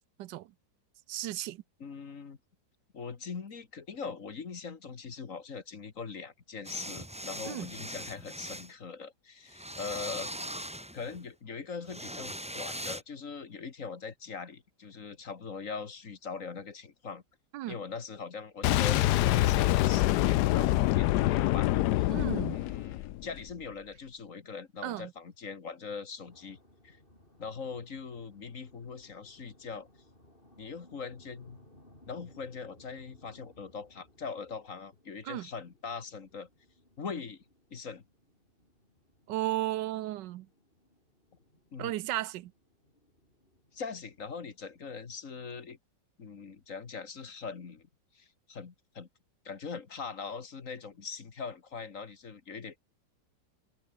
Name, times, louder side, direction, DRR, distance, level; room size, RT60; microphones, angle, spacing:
voice 1, 1.1-1.6 7.4-7.7 17.5-17.8 22.1-22.6 24.8-25.1 35.2-35.5 39.3-40.5 41.8-42.5, right 14 dB, 80° right, 1.3 m, -34 dB
voice 2, 1.8-2.4 2.9-10.3 10.9-17.2 17.7-22.1 22.5-26.6 26.8-27.0 27.4-29.9 30.6-31.6 32.1-36.5 37.0-37.4 37.7-38.0 41.7-41.9 43.7-45.8 46.2-47.9 48.1-49.1 49.5-52.8, left 5 dB, 45° left, 2.0 m, -41 dB
sound 1, 6.6-8.7 9.5-11.2 11.9-13.0, equal, 5° right, 1.9 m, -40 dB
Boom, 18.6-23.5, left 16 dB, 75° left, 1.1 m, -26 dB
sound 2, 26.2-45.1, left 1 dB, 30° left, 8.1 m, -62 dB
omnidirectional pair, 1.9 m